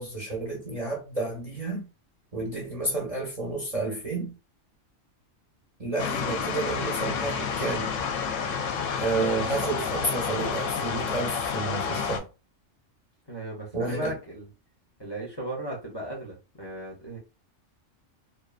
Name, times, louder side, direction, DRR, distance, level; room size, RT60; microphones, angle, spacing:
voice 1, 0.0-1.9 2.3-4.3 5.8-7.9 8.9-12.3 13.7-14.1, right 3 dB, 40° right, 0.6 m, -30 dB
sound 1, 6.0-12.2, left 6 dB, 85° left, 0.9 m, -30 dB
voice 2, 13.3-14.5 15.0-17.2, right 1 dB, 30° left, 0.5 m, -36 dB
2.7 x 2.1 x 2.4 m
omnidirectional pair, 1.3 m